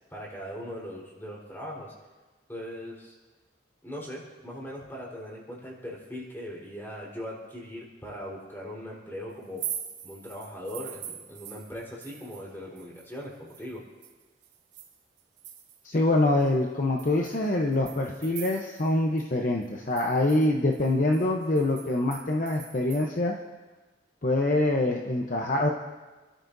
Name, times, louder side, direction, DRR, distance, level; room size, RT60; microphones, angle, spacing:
voice 1, 0.1-1.9 2.5-3.1 3.8-9.6 10.0-13.8, equal, 10° left, -4 dB, 4.0 m, -40 dB
sound 1, 9.4-12.5 12.8-16.0 16.4-16.5 17.0-18.9 19.2-19.3 19.6-23.0, right 9 dB, 75° right, 2.4 m, -43 dB
voice 2, 15.8-23.3 24.2-25.7, left 2 dB, 45° left, 1 dB, 0.8 m, -25 dB
29.0 x 13.0 x 2.7 m, 1.3 s
head